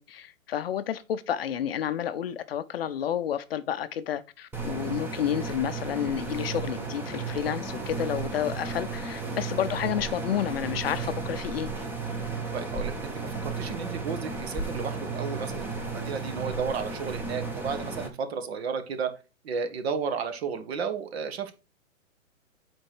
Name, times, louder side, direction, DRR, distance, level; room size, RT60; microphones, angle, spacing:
voice 1, 0.0-11.7, left 10 dB, 45° left, 0.6 m, -30 dB
sound 1, 4.5-18.1, right 4 dB, 5° right, 0.9 m, -34 dB
voice 2, 12.5-19.1 19.4-21.5, right 6 dB, 50° right, 1.6 m, -33 dB
7.6 x 4.4 x 4.7 m
hypercardioid pair, 135°, 41 cm